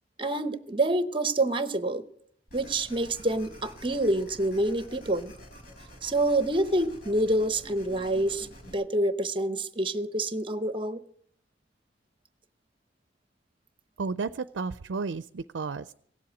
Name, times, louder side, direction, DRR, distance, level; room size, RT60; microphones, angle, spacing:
voice 1, 0.2-2.0 2.5-5.3 6.0-8.5 8.7-11.0, right 1 dB, 30° right, 12 dB, 0.9 m, -27 dB
sound 1, 2.5-8.7, equal, 55° left, 4.4 m, -48 dB
voice 2, 14.0-15.9, right 4 dB, 75° right, 14 dB, 0.5 m, -32 dB
17.5 x 7.7 x 8.2 m, 0.65 s
head